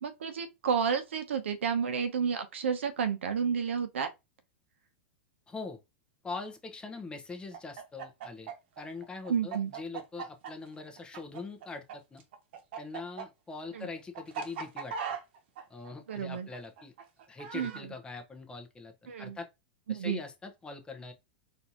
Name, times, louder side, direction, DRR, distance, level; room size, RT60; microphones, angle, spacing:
voice 1, 0.0-4.1 9.3-9.7 13.7-13.9 16.1-16.5 17.5-17.9 19.1-19.4 19.9-20.2, right 6 dB, 85° right, 0.8 m, -31 dB
voice 2, 5.5-5.8 6.2-8.5 8.8-12.2 12.8-15.0 15.7-16.9 17.3-19.5 19.9-21.1, left 3 dB, 15° left, 0.9 m, -42 dB
Chicken rooster, 7.5-11.9 12.2-17.8, right 6 dB, 65° right, 1.0 m, -39 dB
4.3 x 2.7 x 2.9 m
hypercardioid pair, 120°, 6 cm